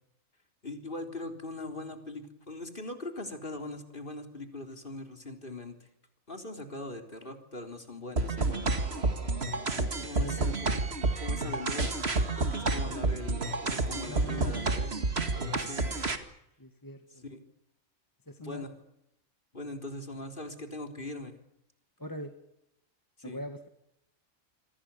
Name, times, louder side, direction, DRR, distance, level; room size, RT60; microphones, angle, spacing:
voice 1, 0.6-5.9 6.3-8.6 10.1-12.0 12.5-15.0 15.3-16.0 17.2-17.4 18.4-18.7 19.5-21.3 23.2-23.4, left 2 dB, 40° left, 5 dB, 3.9 m, -41 dB
sound 1, 8.2-16.2, right 3 dB, 50° right, 2.4 m, -30 dB
voice 2, 10.2-10.6 14.1-14.7 15.5-16.0 16.6-17.2 18.3-18.7 22.0-22.3 23.2-23.7, left 1 dB, 15° left, 6 dB, 1.8 m, -42 dB
28.0 x 24.0 x 7.1 m, 0.80 s
omnidirectional pair, 1.4 m